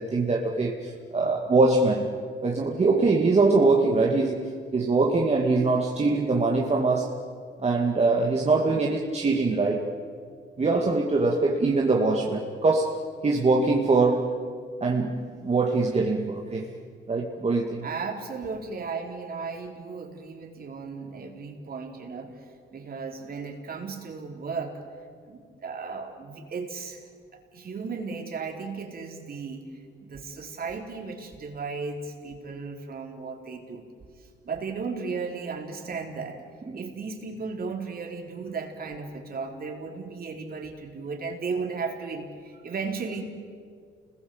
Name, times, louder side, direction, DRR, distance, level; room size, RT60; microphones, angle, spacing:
voice 1, 0.0-2.2 2.4-7.1 7.6-9.9 10.6-14.4 14.8-16.7 17.1-17.9 36.7-36.8, right 3 dB, 30° right, -1 dB, 2.3 m, -23 dB
voice 2, 17.8-22.5 22.7-24.8 25.3-27.0 27.3-29.6 30.0-33.8 34.2-36.4 36.7-43.2, right 4 dB, 50° right, 2 dB, 4.3 m, -35 dB
29.5 x 21.0 x 8.1 m, 2.1 s
cardioid pair, 90°, 20 cm